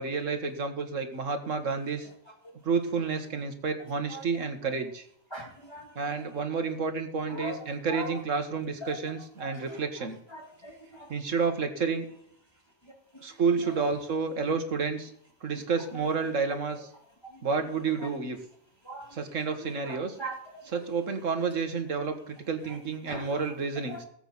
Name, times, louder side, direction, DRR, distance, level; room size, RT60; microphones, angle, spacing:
voice 1, 0.0-2.1 2.7-5.1 6.0-10.2 11.1-12.1 13.2-15.1 15.4-16.9 17.4-18.4 19.1-20.2 20.7-24.0, right 5 dB, 85° right, 6 dB, 1.9 m, -30 dB
voice 2, 4.1-4.4 5.3-5.9 7.3-7.6 7.9-8.2 8.8-9.0 9.4-9.8 10.3-11.1 13.1-13.2 13.6-13.8 15.9-16.1 17.3-17.4 18.0-18.1 18.8-19.1 19.7-20.6 22.7-22.8 23.1-23.3 23.9-24.0, right 1 dB, 20° left, -1 dB, 2.3 m, -40 dB
19.0 x 8.1 x 4.1 m, 0.72 s
omnidirectional pair, 1.3 m